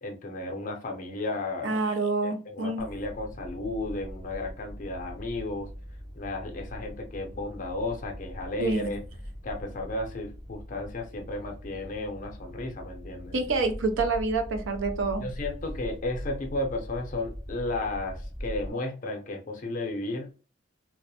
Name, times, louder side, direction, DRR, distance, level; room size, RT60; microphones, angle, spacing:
voice 1, 0.0-1.8 2.2-5.7 6.2-9.0 9.4-13.3 15.2-20.3, left 2 dB, 40° left, 0.5 m, -34 dB
voice 2, 1.6-2.8 8.6-8.9 13.3-15.3, right 3 dB, 75° right, 0.5 m, -27 dB
sound 1, 2.8-18.7, equal, 20° right, 0.5 m, -41 dB
2.3 x 2.0 x 2.7 m
head